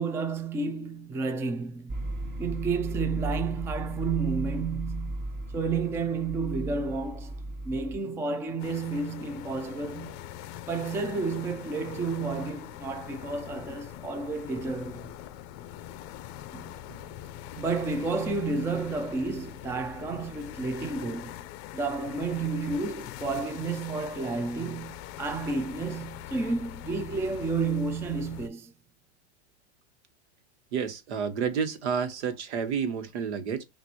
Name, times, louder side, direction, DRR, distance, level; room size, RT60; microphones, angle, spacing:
voice 1, 0.0-2.0 2.4-5.2 5.5-7.3 7.6-10.2 10.7-15.1 16.5-17.1 17.5-21.4 21.7-28.7, right 4 dB, 10° right, 0.4 m, -31 dB
sound 1, 1.9-8.0, right 1 dB, 35° right, 2.4 m, -35 dB
sound 2, 8.6-28.5, left 12 dB, 40° left, 0.6 m, -43 dB
voice 2, 30.7-33.6, right 6 dB, 75° right, 1.3 m, -30 dB
5.9 x 2.5 x 2.8 m
supercardioid pair, 130°, 35 cm